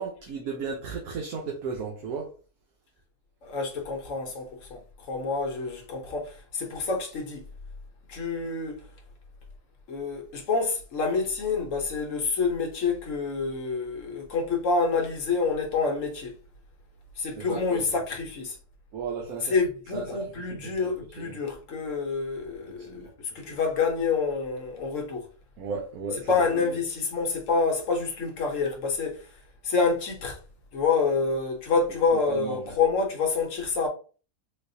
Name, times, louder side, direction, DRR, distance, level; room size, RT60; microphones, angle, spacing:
voice 1, 0.0-2.3 17.4-17.9 18.9-19.5 19.9-20.1 20.5-20.9 21.2-21.4 22.8-23.1 23.5-23.6 25.6-26.3 26.6-26.7 32.3-32.7, right 5 dB, 70° right, 1.2 m, -35 dB
voice 2, 3.4-7.5 8.1-8.8 9.9-16.3 17.2-18.6 19.4-25.3 26.3-29.3 29.6-30.4 30.7-33.9, left 4 dB, 60° left, 1.2 m, -27 dB
4.1 x 2.4 x 2.6 m
omnidirectional pair, 1.6 m